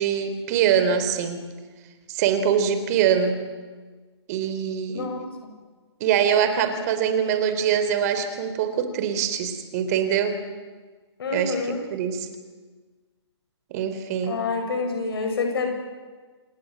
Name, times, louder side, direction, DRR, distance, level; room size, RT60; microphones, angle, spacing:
voice 1, 0.0-1.5 2.1-3.5 4.3-5.1 6.0-10.4 11.3-12.3 13.7-14.4, right 8 dB, 35° right, 10 dB, 3.8 m, -23 dB
voice 2, 4.9-5.5 11.2-11.8 14.2-15.7, left 4 dB, 55° left, 4 dB, 7.6 m, -28 dB
28.0 x 20.0 x 9.7 m, 1.4 s
figure-of-eight pair, 135°, 15 cm